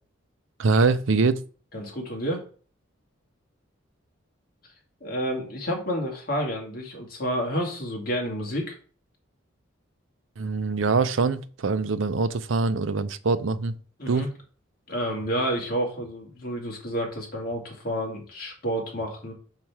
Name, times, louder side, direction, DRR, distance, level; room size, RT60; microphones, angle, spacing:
voice 1, 0.6-1.4 10.4-13.7 14.1-14.3, right 4 dB, 70° right, 0.5 m, -23 dB
voice 2, 1.7-2.4 5.0-8.7 14.0-14.3 14.9-19.3, equal, 45° left, 2.1 m, -30 dB
5.8 x 4.7 x 4.7 m
head